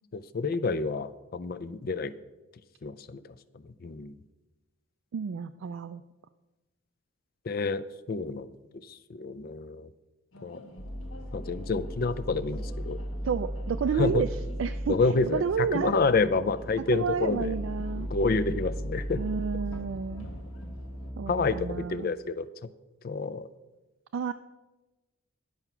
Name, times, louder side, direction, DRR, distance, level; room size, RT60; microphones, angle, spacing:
voice 1, 0.1-2.1 2.8-3.2 3.8-4.2 7.5-8.5 8.9-9.9 10.4-10.6 11.3-13.0 14.0-14.2 14.9-17.6 18.0-19.2 21.3-22.5 23.0-23.5, left 4 dB, 45° left, 15 dB, 0.4 m, -28 dB
voice 2, 5.1-6.0 13.2-14.3 14.6-15.0 15.3-16.0 16.9-18.1 19.2-20.3 21.2-22.1 24.1-24.3, right 6 dB, 70° right, 9 dB, 0.3 m, -30 dB
sound 1, 10.3-21.1, left 1 dB, 75° left, 1.2 m, -51 dB
sound 2, 10.8-21.8, equal, 20° left, 1.2 m, -37 dB
11.0 x 5.6 x 5.9 m, 1.1 s
head